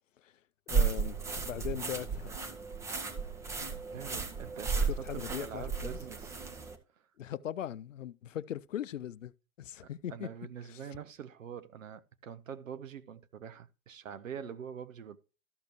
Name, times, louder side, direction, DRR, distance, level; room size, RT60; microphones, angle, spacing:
voice 1, 0.7-2.4 4.9-6.0 7.2-9.3 9.6-10.3 10.7-10.8, left 10 dB, 65° left, 0.6 m, -39 dB
sound 1, 0.7-6.8, right 5 dB, 5° right, 0.7 m, -34 dB
voice 2, 3.9-6.4 7.0-7.1 9.8-15.2, right 8 dB, 65° right, 0.9 m, -45 dB
13.0 x 6.6 x 3.1 m
figure-of-eight pair, 115°, 42 cm